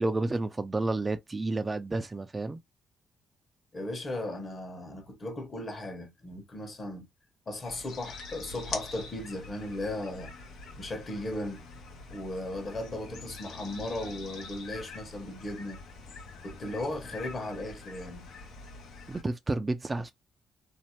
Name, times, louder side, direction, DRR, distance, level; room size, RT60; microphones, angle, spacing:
voice 1, 0.0-2.6 19.1-20.1, right 2 dB, 25° right, 0.3 m, -30 dB
voice 2, 3.7-7.1 7.5-10.3 10.8-11.7 12.1-15.8 16.4-18.3, left 1 dB, 35° left, 1.0 m, -36 dB
sound 1, 7.6-19.2, left 4 dB, 80° left, 0.8 m, -45 dB
2.6 x 2.1 x 2.8 m
cardioid pair, 90°, 0 cm